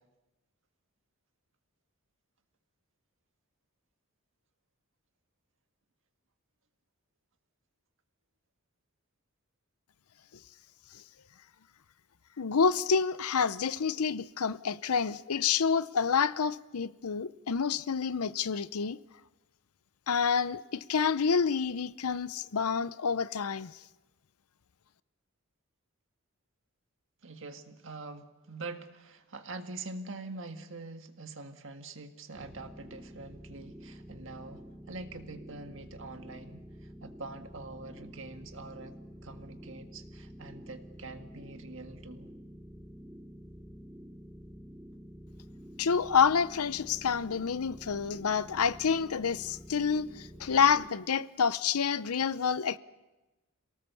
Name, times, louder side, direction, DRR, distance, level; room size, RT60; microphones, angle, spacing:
voice 1, 12.4-19.0 20.1-23.7 45.8-52.8, left 6 dB, 90° left, 0.7 m, -28 dB
voice 2, 27.2-38.9 39.2-42.3, right 3 dB, 60° right, 1.8 m, -44 dB
sound 1, 32.3-50.9, equal, 5° right, 1.0 m, -49 dB
27.5 x 18.5 x 7.0 m
head